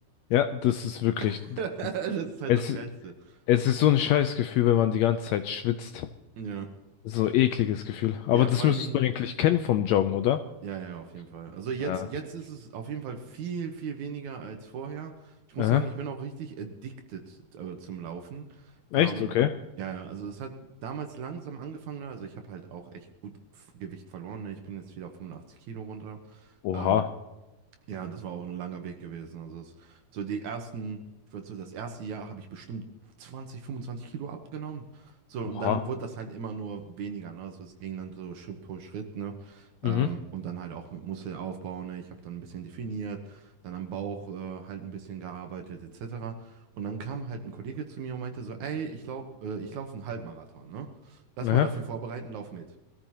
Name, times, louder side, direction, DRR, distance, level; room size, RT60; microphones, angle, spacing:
voice 1, 0.3-1.4 2.5-2.8 3.5-6.1 7.1-10.4 11.8-12.0 15.6-15.8 18.9-19.5 26.6-27.1 35.6-35.8 39.8-40.1 51.4-51.7, left 12 dB, 80° left, 9 dB, 1.6 m, -24 dB
voice 2, 1.2-3.4 6.4-6.7 7.1-7.2 8.3-9.0 10.6-19.3 19.8-27.0 27.9-32.9 33.2-52.8, right 6 dB, 75° right, 5 dB, 2.4 m, -37 dB
21.0 x 14.0 x 2.9 m, 1.1 s
omnidirectional pair, 3.6 m